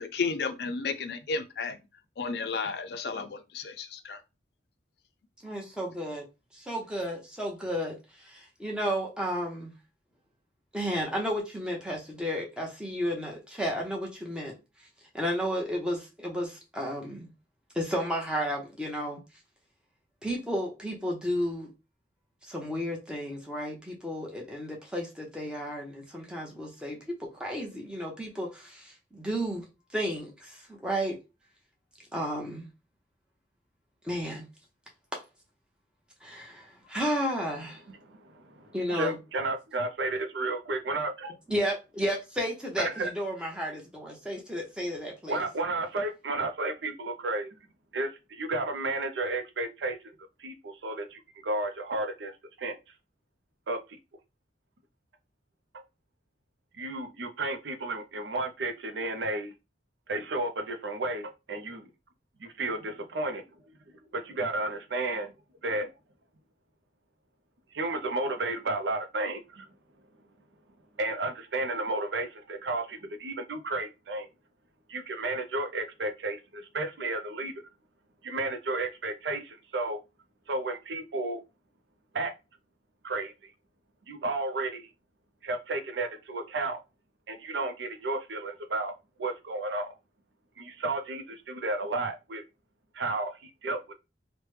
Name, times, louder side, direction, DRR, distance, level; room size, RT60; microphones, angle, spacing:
voice 1, 0.0-1.8 2.2-4.2, left 4 dB, 60° left, 0.4 m, -33 dB
voice 2, 5.4-6.2 6.5-9.7 10.7-14.6 15.1-17.3 17.7-19.2 20.2-21.7 22.5-29.6 29.9-31.2 32.1-32.7 34.0-34.5 35.1-35.2 36.2-37.8 38.7-39.2 41.5-45.4, equal, 5° right, 0.8 m, -32 dB
voice 3, 38.0-41.3 42.8-43.1 45.3-47.5 47.9-50.0 50.4-52.7 53.7-53.8 56.7-59.5 60.1-61.9 62.4-63.4 64.1-65.3 65.6-65.9 67.7-69.7 71.0-74.3 74.9-77.6 78.2-80.0 80.5-81.4 82.1-82.3 83.0-83.5 84.1-84.9 85.4-86.8 87.3-88.9 89.2-89.9 90.6-92.4 92.9-93.9, right 2 dB, 80° right, 0.5 m, -32 dB
3.2 x 2.1 x 3.1 m
head